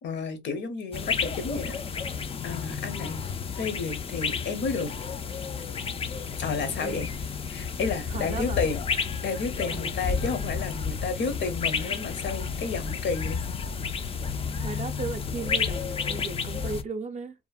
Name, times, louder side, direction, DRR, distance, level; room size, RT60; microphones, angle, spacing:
voice 1, 0.0-1.8 2.4-3.2 3.5-4.9 6.4-7.1 7.5-8.8 9.2-13.4, left 4 dB, 65° left, 0.8 m, -31 dB
sound 1, 0.9-16.8, left 5 dB, 30° left, 0.3 m, -31 dB
voice 2, 8.1-8.6 9.7-10.1 14.6-17.3, right 4 dB, 35° right, 0.5 m, -36 dB
2.9 x 2.0 x 2.3 m
cardioid pair, 90°, 20 cm